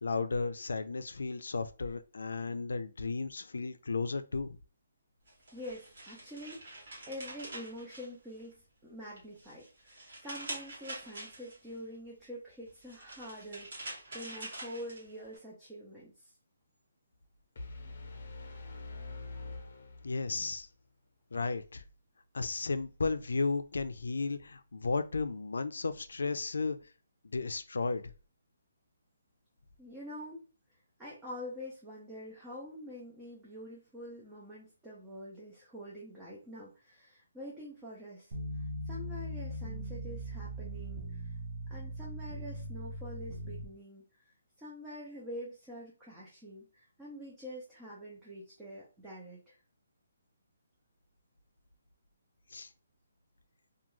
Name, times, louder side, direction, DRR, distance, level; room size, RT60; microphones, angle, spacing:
voice 1, 0.0-4.6 20.0-20.7 21.3-21.8 22.3-26.8 27.2-28.0 52.5-52.7, left 4 dB, 90° left, 0.3 m, -34 dB
sound 1, 5.3-8.6 9.0-11.8 12.7-15.4, right 1 dB, 50° right, 1.1 m, -46 dB
voice 2, 5.5-16.3 29.8-30.4 31.0-41.4 41.7-44.3 44.6-49.6, equal, 5° right, 0.4 m, -46 dB
sound 2, 17.6-20.5, left 2 dB, 40° left, 0.6 m, -45 dB
sound 3, 38.3-43.6, right 1 dB, 30° right, 0.7 m, -40 dB
2.3 x 2.2 x 3.0 m
hypercardioid pair, 175°, 0 cm